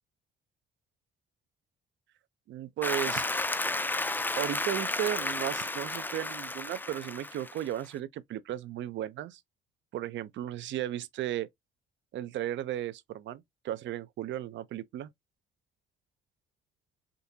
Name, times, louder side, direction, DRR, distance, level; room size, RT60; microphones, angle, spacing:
voice 1, 2.5-3.3 4.4-9.4 9.9-11.5 12.1-15.1, right 12 dB, 70° right, 0.5 m, -35 dB
Applause, 2.8-7.9, left 2 dB, 10° left, 0.4 m, -32 dB
3.7 x 2.7 x 2.7 m
cardioid pair, 90°, 20 cm